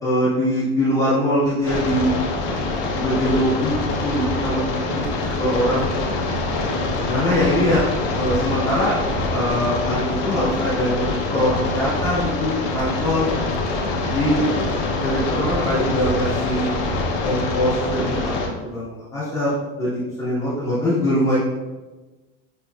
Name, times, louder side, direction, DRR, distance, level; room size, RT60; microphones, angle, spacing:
voice 1, 0.0-2.1 2.9-3.7 4.0-5.8 7.0-7.8 8.1-8.9 9.3-11.0 11.3-13.3 14.1-14.4 15.0-16.7 17.2-18.3 18.6-21.4, equal, 10° left, -12 dB, 1.0 m, -22 dB
sound 1, 1.7-18.5, left 3 dB, 35° left, 0.6 m, -24 dB
voice 2, 4.7-5.8 14.3-14.9, left 2 dB, 15° right, -8 dB, 1.3 m, -35 dB
6.1 x 3.0 x 2.2 m, 1.2 s
supercardioid pair, 165°, 34 cm